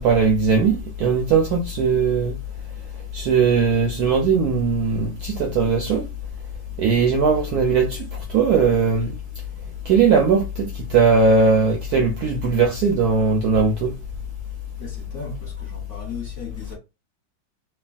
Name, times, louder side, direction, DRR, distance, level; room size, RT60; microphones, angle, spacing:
voice 1, 0.0-2.3 3.1-6.1 6.8-9.2 9.9-13.9, right 5 dB, 70° right, 0.9 m, -19 dB
voice 2, 14.8-16.7, left 4 dB, 45° left, 1.2 m, -36 dB
3.1 x 2.2 x 2.4 m
omnidirectional pair, 2.1 m